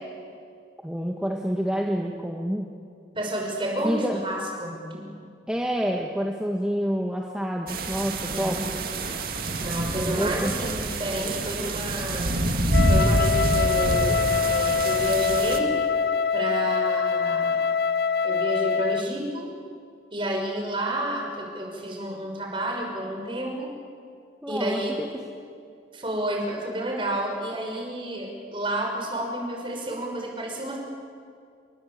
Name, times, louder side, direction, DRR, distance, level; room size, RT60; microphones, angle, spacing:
voice 1, 0.8-2.7 3.8-4.2 5.5-8.6 10.1-10.5 24.4-25.1, equal, 5° right, 0 dB, 1.6 m, -28 dB
voice 2, 3.1-5.1 8.3-8.8 9.6-12.4 12.8-15.7 16.3-17.6 18.2-19.5 20.1-23.7 24.5-25.0 25.9-30.8, right 1 dB, 30° right, 1 dB, 6.0 m, -30 dB
sound 1, 7.7-15.6, right 1 dB, 50° right, 2.4 m, -26 dB
Wind instrument woodwind instrument, 12.7-19.1, left 5 dB, 55° left, 0.7 m, -24 dB
29.5 x 23.5 x 8.4 m, 2.3 s
head